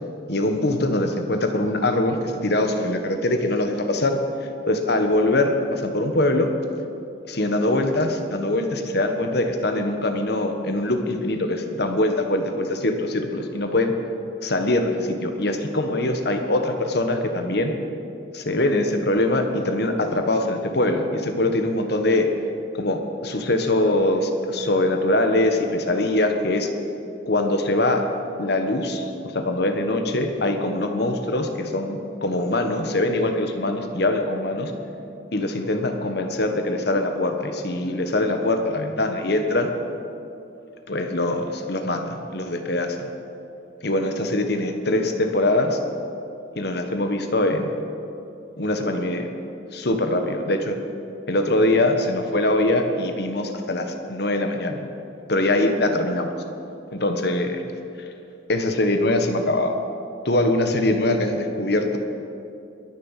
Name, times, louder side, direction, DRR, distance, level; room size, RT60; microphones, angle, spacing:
voice 1, 0.3-4.2 4.7-6.5 7.3-13.9 14.4-17.7 18.3-22.3 22.7-26.7 27.2-28.0 28.4-34.7 35.3-39.7 40.9-43.1 43.8-45.8 46.6-47.7 48.6-49.3 49.7-50.7 51.3-54.8 55.3-56.3 56.9-57.6 58.5-59.7 60.2-62.0, left 1 dB, 60° left, 6 dB, 1.4 m, -23 dB
21.5 x 7.3 x 7.4 m, 2.7 s
head